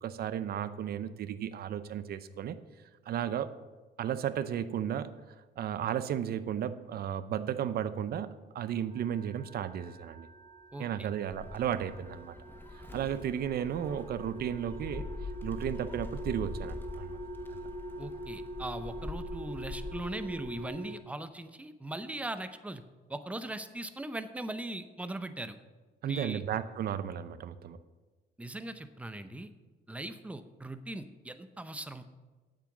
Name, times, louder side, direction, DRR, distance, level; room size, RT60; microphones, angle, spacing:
voice 1, 0.0-2.6 3.1-3.5 4.0-5.1 5.6-8.3 8.5-10.3 10.8-12.3 12.9-15.1 15.4-17.2 26.0-27.8, right 9 dB, 55° right, 13 dB, 0.7 m, -34 dB
sound 1, 8.9-21.0, equal, 25° right, 1.7 m, -45 dB
Gull seagull, 11.3-20.7, left 2 dB, 10° left, 1.0 m, -44 dB
voice 2, 18.0-22.8 23.1-25.6 26.0-26.4 28.4-29.5 29.9-32.0, right 1 dB, 5° right, 10 dB, 0.6 m, -39 dB
9.1 x 7.6 x 7.1 m, 1.3 s
cardioid pair, 125°, 19 cm